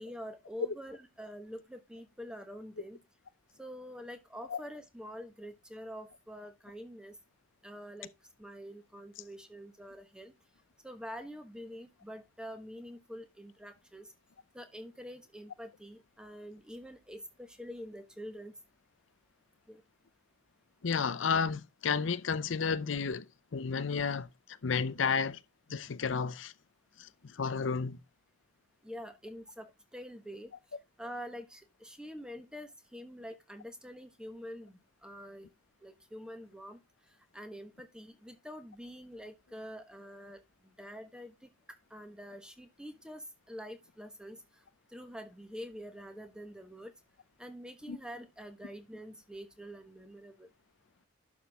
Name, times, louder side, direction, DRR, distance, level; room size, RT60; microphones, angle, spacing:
voice 1, 0.0-3.0 3.6-7.2 7.6-8.1 8.4-10.3 10.8-14.1 14.5-18.5 19.7-19.8 28.8-30.5 31.0-35.5 35.8-36.8 37.3-41.5 41.9-44.4 44.9-46.9 47.4-50.5, equal, 5° right, 1.2 m, -46 dB
voice 2, 20.8-23.2 23.5-24.3 24.6-25.4 25.7-26.5 27.0-28.0 47.9-48.0, left 5 dB, 80° left, 0.6 m, -31 dB
11.5 x 6.0 x 3.5 m
head